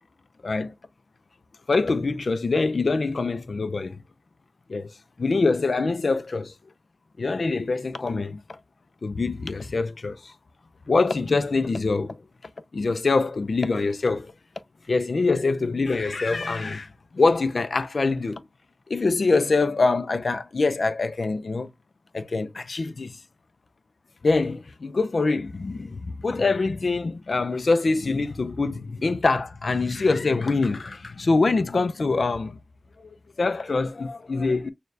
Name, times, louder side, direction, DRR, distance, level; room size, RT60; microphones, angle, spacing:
voice 1, 0.4-0.7 1.7-4.0 4.7-6.5 7.2-8.6 9.0-10.3 10.9-12.2 12.7-14.3 14.9-18.4 18.9-21.7 22.1-23.2 24.2-32.6 33.0-34.7, left 3 dB, 75° left, 0.4 m, -24 dB
6.4 x 2.3 x 2.6 m
wide cardioid pair, 75°, 0 cm